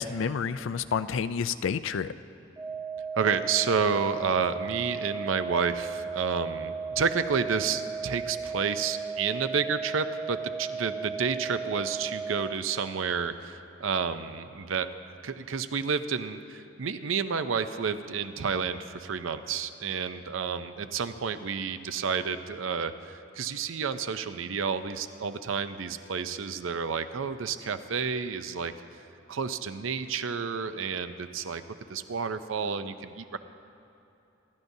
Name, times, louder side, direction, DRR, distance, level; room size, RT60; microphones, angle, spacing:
voice 1, 0.0-2.1, left 6 dB, 80° left, 13 dB, 0.4 m, -29 dB
sound 1, 2.6-12.6, right 5 dB, 10° right, 1.4 m, -35 dB
voice 2, 3.2-14.9 15.2-28.7 29.3-31.6 31.9-33.4, right 6 dB, 90° right, 11 dB, 0.6 m, -30 dB
26.5 x 11.5 x 2.7 m, 2.9 s
head